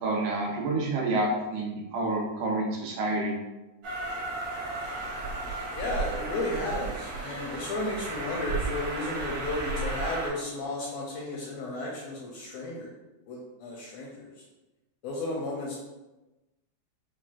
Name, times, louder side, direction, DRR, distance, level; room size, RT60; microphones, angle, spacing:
voice 1, 0.0-3.4, right 2 dB, 85° right, -2 dB, 2.1 m, -28 dB
Train, 3.8-10.3, right 3 dB, 65° right, 1.5 m, -34 dB
voice 2, 5.7-12.9 13.3-14.4 15.0-15.7, left 2 dB, 80° left, -3 dB, 1.5 m, -33 dB
5.8 x 2.3 x 2.3 m, 1.1 s
omnidirectional pair, 3.4 m